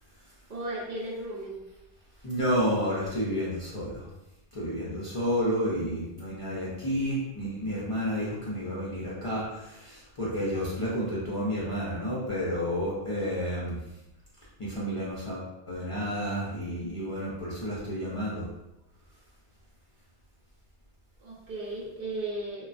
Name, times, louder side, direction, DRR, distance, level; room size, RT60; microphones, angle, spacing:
voice 1, 0.5-1.7 21.2-22.7, right 2 dB, 55° right, -5 dB, 0.6 m, -35 dB
voice 2, 2.2-4.1 4.5-13.8 14.6-18.4, equal, 40° left, -8 dB, 0.5 m, -30 dB
3.1 x 2.2 x 2.5 m, 0.94 s
omnidirectional pair, 1.1 m